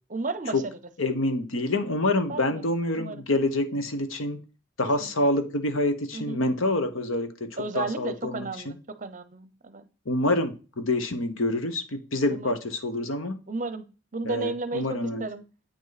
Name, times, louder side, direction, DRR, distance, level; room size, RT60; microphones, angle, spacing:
voice 1, 0.1-0.7 2.3-2.6 3.0-3.2 5.0-5.1 6.1-6.4 7.6-9.9 12.3-12.5 13.5-13.8 14.1-15.4, right 3 dB, 40° right, 12 dB, 0.7 m, -33 dB
voice 2, 1.0-4.4 4.8-8.8 10.0-13.4 14.2-15.3, left 2 dB, 80° left, 9 dB, 1.1 m, -27 dB
8.6 x 5.3 x 4.1 m, 0.34 s
head